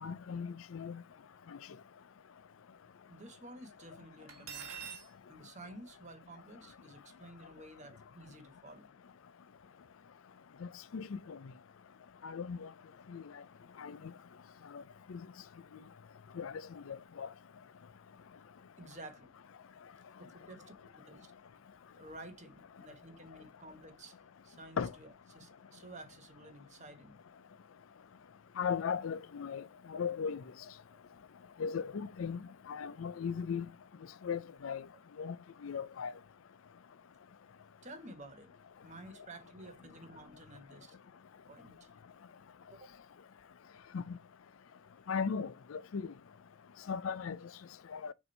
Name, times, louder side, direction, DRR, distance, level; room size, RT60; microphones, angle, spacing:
voice 1, 0.0-1.0 10.6-11.4 12.2-12.7 13.1-13.2 13.8-14.0 14.7-14.8 15.1-15.2 16.4-17.3 24.8-24.9 28.6-29.6 29.9-30.4 31.6-32.4 32.7-33.7 34.2-34.8 35.2-35.4 35.6-36.1 43.9-44.2 45.1-46.1 46.9-47.4 47.9-48.1, left 6 dB, 90° left, 0.5 m, -37 dB
voice 2, 3.1-4.9 5.3-8.9 18.8-19.3 20.3-21.3 22.0-24.2 24.4-27.2 30.9-31.0 37.8-38.5 38.8-41.0 41.5-41.9 42.7-42.9, right 1 dB, 35° right, 1.3 m, -52 dB
Cutlery silverware, 4.3-5.1, right 7 dB, 85° right, 1.7 m, -44 dB
6.8 x 2.8 x 5.4 m
head